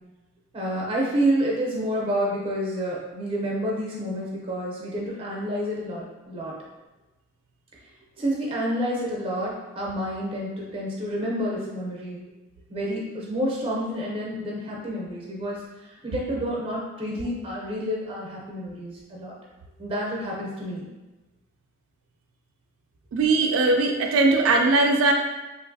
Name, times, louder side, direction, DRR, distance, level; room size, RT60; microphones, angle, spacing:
voice 1, 0.5-6.5 8.2-12.2 12.7-15.6 16.0-19.3 19.8-20.9, equal, 25° right, -3 dB, 0.6 m, -29 dB
voice 2, 23.1-25.1, right 3 dB, 80° right, 2 dB, 0.3 m, -20 dB
3.1 x 2.5 x 2.6 m, 1.1 s
head